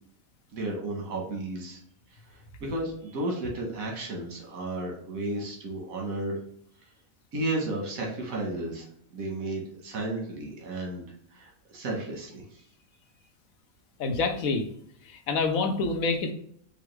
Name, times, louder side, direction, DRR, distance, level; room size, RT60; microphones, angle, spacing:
voice 1, 0.5-1.8 2.3-6.4 7.3-12.6, right 2 dB, 80° right, -1 dB, 1.5 m, -33 dB
voice 2, 14.0-14.7 15.1-16.3, left 3 dB, 85° left, 5 dB, 1.2 m, -27 dB
5.0 x 2.3 x 3.1 m, 0.63 s
omnidirectional pair, 1.4 m